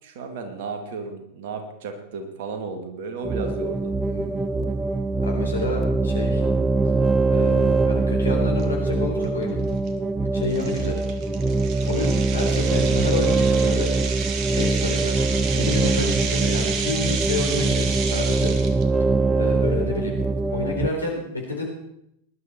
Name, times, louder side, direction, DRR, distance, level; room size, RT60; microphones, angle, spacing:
voice 1, 0.0-3.9, right 4 dB, 55° right, 5 dB, 2.4 m, -33 dB
sound 1, 3.2-20.9, right 3 dB, 10° right, 0.8 m, -23 dB
voice 2, 5.2-6.4 7.3-9.6 10.3-11.0 11.8-13.9 14.5-18.5 19.4-20.2 20.5-21.7, left 2 dB, 75° left, 1 dB, 4.0 m, -29 dB
sound 2, 8.6-8.7 9.2-9.4 9.9-10.0 10.5-18.8, right 6 dB, 35° right, 1.7 m, -31 dB
19.0 x 11.5 x 4.5 m, 0.79 s
figure-of-eight pair, 90°, 0 cm